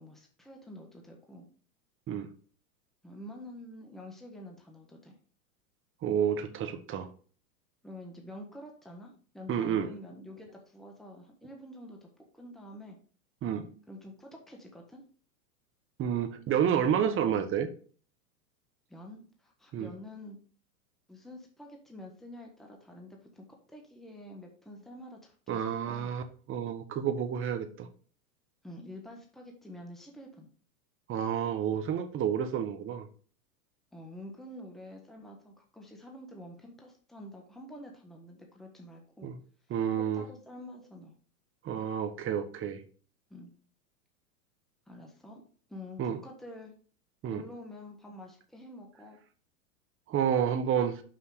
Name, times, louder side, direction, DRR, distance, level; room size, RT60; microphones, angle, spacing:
voice 1, 0.0-1.5 3.0-5.1 7.8-13.0 13.9-15.0 16.9-17.5 18.9-20.4 21.1-26.1 28.6-30.5 33.9-39.3 40.1-41.1 43.3-43.5 44.9-45.4 45.7-46.7 47.3-49.2, left 1 dB, ahead, 1 dB, 1.4 m, -48 dB
voice 2, 6.0-7.1 9.5-9.9 13.4-13.7 16.0-17.7 19.7-19.9 25.5-27.9 31.1-33.1 39.2-39.4 39.7-40.2 41.6-42.8 46.0-46.2 47.2-47.4 50.1-51.0, right 8 dB, 25° right, 8 dB, 1.1 m, -30 dB
6.0 x 5.6 x 4.9 m, 0.42 s
hypercardioid pair, 115°, 46 cm